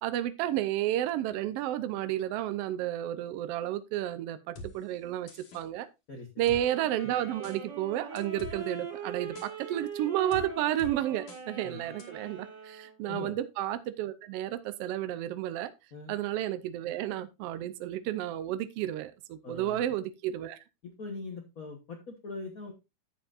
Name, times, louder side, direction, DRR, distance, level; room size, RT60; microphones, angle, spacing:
voice 1, 0.0-5.9 6.4-15.7 16.1-20.6, right 12 dB, 85° right, 1.3 m, -32 dB
sound 1, 4.6-4.7 5.3-5.6 6.5-6.6 7.4-7.6 8.2-8.6 9.4-9.5 10.3-10.5 10.8-10.9 11.3-11.4 12.0-12.1, left 1 dB, 65° left, 2.8 m, -43 dB
voice 2, 6.1-6.5 11.6-11.9 13.1-13.3 15.9-16.1 19.4-19.8 20.8-22.7, left 3 dB, 85° left, 0.7 m, -42 dB
sound 2, 6.4-13.0, right 5 dB, 60° right, 3.8 m, -42 dB
11.5 x 7.7 x 2.5 m
omnidirectional pair, 3.5 m